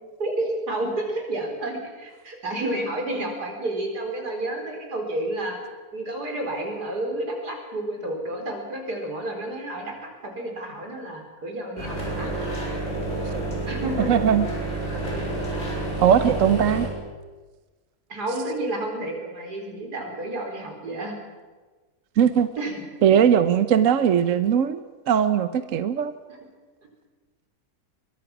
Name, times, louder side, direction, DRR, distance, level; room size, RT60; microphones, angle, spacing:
voice 1, 0.2-5.6 5.9-12.3 13.7-14.1 15.1-15.3 18.1-21.2 22.6-22.8 26.3-26.4, right 1 dB, 80° right, 2 dB, 5.0 m, -30 dB
sound 1, 11.8-16.9, right 2 dB, 40° left, 5.5 m, -29 dB
voice 2, 14.1-14.4 16.0-16.9 22.2-22.5 23.0-24.8 25.1-26.1, right 8 dB, 60° right, 12 dB, 1.1 m, -19 dB
23.0 x 22.0 x 6.1 m, 1.3 s
omnidirectional pair, 1.7 m